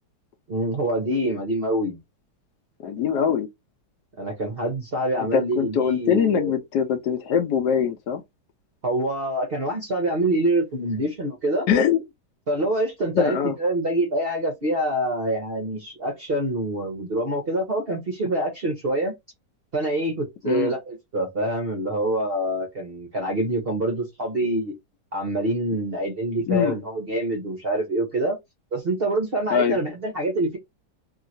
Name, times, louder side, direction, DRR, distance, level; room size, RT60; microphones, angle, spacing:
voice 1, 0.5-2.0 4.2-6.5 8.8-11.7 12.5-19.1 19.7-24.7 25.1-28.4 28.7-30.6, right 1 dB, 50° right, 0.7 m, -25 dB
voice 2, 2.8-3.5 5.2-8.2 11.7-12.0 13.2-13.5 20.4-20.7 26.5-26.8 29.5-29.8, left 7 dB, 70° left, 1.1 m, -22 dB
2.9 x 2.9 x 2.5 m
omnidirectional pair, 2.0 m